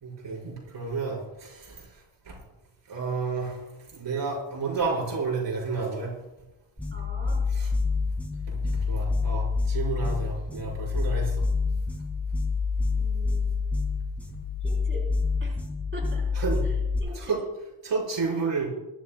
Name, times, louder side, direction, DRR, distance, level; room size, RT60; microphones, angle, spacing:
voice 1, 0.0-1.6 2.3-2.4 2.9-3.6 3.9-6.1 8.5-8.6 8.9-11.3 16.4-16.6 17.1-17.4 17.8-18.7, right 4 dB, 75° right, -4 dB, 6.0 m, -30 dB
sound 1, 6.8-17.0, left 4 dB, 5° left, 2.3 m, -27 dB
voice 2, 6.9-7.4 12.9-13.5 14.6-15.1 15.4-15.6 15.9-16.2 16.6-17.4, right 1 dB, 25° right, -3 dB, 4.3 m, -43 dB
23.5 x 12.5 x 2.3 m, 0.97 s
wide cardioid pair, 175°, 44 cm